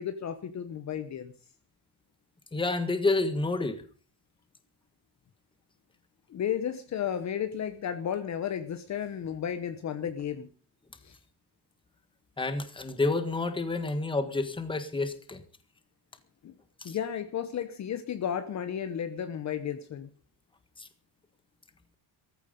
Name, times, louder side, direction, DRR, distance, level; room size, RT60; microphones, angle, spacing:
voice 1, 0.0-1.3 6.3-10.5 11.0-11.2 16.4-16.5 16.8-20.1, left 9 dB, 40° left, 10 dB, 1.1 m, -33 dB
voice 2, 2.5-3.8 12.4-15.4 16.8-17.0 20.8-20.9, left 3 dB, 10° left, 10 dB, 1.5 m, -29 dB
14.5 x 14.0 x 5.3 m, 0.40 s
cardioid pair, 160°, 44 cm